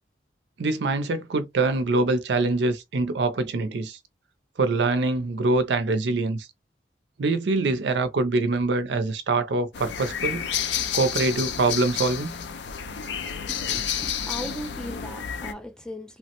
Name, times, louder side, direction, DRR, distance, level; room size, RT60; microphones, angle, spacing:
voice 1, 0.6-4.0 4.6-6.5 7.2-10.5 10.9-12.3, right 3 dB, 75° right, 0.5 m, -24 dB
sound 1, 9.7-15.5, left 8 dB, 80° left, 0.5 m, -30 dB
voice 2, 13.5-16.2, left 1 dB, 5° left, 0.3 m, -38 dB
3.1 x 2.1 x 2.9 m
head